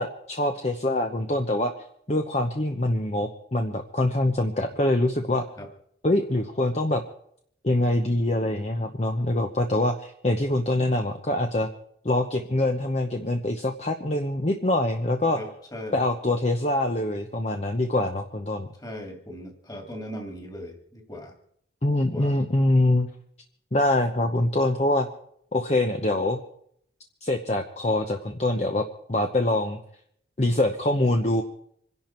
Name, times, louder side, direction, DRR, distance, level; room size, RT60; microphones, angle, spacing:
voice 1, 0.0-1.7 2.1-5.4 6.0-7.0 7.6-11.7 12.0-15.4 15.9-18.7 21.8-23.1 23.7-25.1 25.5-26.4 27.2-29.8 30.4-31.4, left 1 dB, 35° left, 5 dB, 0.9 m, -24 dB
voice 2, 15.3-16.0 18.8-21.3 22.1-22.4 24.3-24.6, left 1 dB, 20° left, 3 dB, 2.3 m, -39 dB
26.0 x 11.0 x 4.5 m, 0.68 s
head